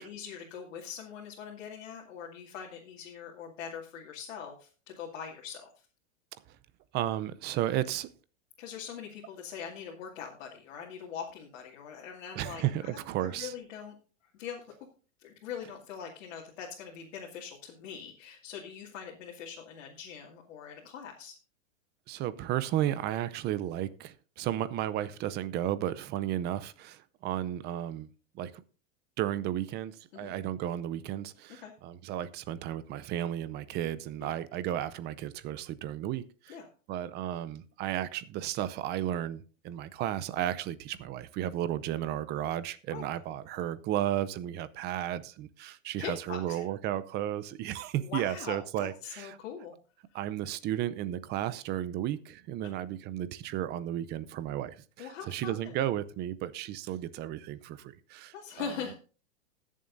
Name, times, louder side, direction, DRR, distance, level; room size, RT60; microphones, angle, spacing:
voice 1, 0.0-5.7 8.6-14.0 14.3-14.6 15.2-21.3 30.1-30.3 31.5-31.7 34.2-34.4 36.5-36.7 42.9-43.0 46.0-46.6 48.0-49.8 52.6-52.7 55.0-55.8 58.3-58.9, left 7 dB, 65° left, 2.4 m, -42 dB
voice 2, 6.9-8.1 12.4-13.5 22.1-28.1 28.3-28.6 29.2-36.6 36.9-49.4 50.1-58.7, right 12 dB, 25° right, 0.6 m, -33 dB
20.0 x 7.3 x 2.6 m
hypercardioid pair, 135°, 38 cm